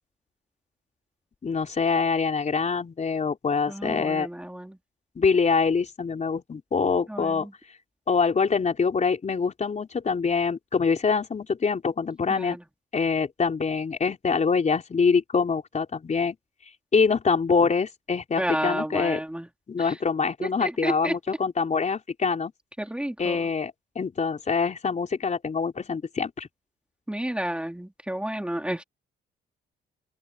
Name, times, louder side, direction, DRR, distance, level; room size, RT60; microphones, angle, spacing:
voice 1, 1.4-4.3 5.2-7.5 8.1-12.6 12.9-16.4 16.9-19.2 19.7-22.5 23.2-26.5, left 5 dB, 35° left, 4.3 m, -25 dB
voice 2, 3.7-4.8 7.1-7.5 12.3-12.6 18.4-19.5 20.4-21.1 22.8-23.4 27.1-28.8, right 1 dB, 5° right, 3.6 m, -31 dB
cardioid pair, 90°, 20 cm